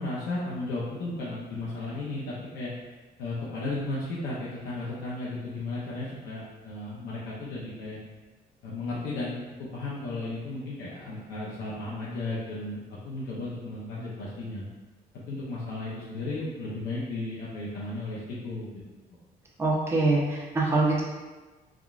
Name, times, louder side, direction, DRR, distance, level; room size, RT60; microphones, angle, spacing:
voice 1, 0.0-2.7 3.2-8.0 8.6-14.7 15.3-18.7, left 2 dB, 80° left, -7 dB, 0.7 m, -34 dB
voice 2, 19.6-21.0, right 2 dB, 15° right, -5 dB, 0.6 m, -24 dB
3.6 x 2.3 x 2.4 m, 1.2 s
cardioid pair, 110°, 17 cm